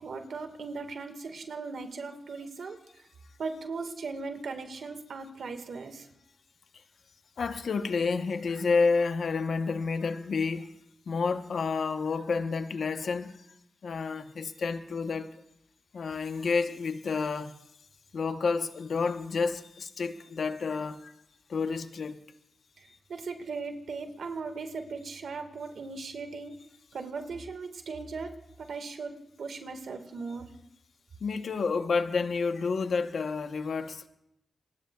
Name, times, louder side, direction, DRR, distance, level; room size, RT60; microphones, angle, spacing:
voice 1, 0.0-2.8 3.4-6.1 22.8-26.5 26.9-28.3 28.6-30.5, right 4 dB, 85° right, 1.7 m, -38 dB
voice 2, 7.4-10.7 11.1-13.4 13.8-15.4 15.9-17.5 18.1-21.1 21.5-22.2 31.2-34.1, left 4 dB, 80° left, 0.9 m, -30 dB
28.0 x 20.5 x 2.3 m
cardioid pair, 55°, 0 cm